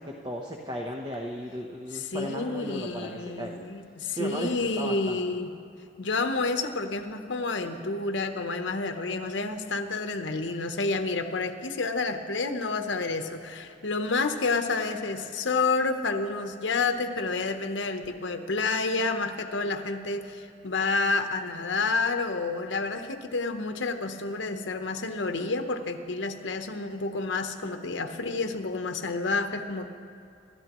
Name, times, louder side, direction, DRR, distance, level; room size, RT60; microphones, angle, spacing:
voice 1, 0.0-3.7 4.1-5.2, equal, 20° right, 1 dB, 0.8 m, -36 dB
voice 2, 1.9-5.5 6.0-29.9, left 3 dB, 75° left, 7 dB, 0.9 m, -29 dB
26.0 x 12.5 x 3.0 m, 2.5 s
head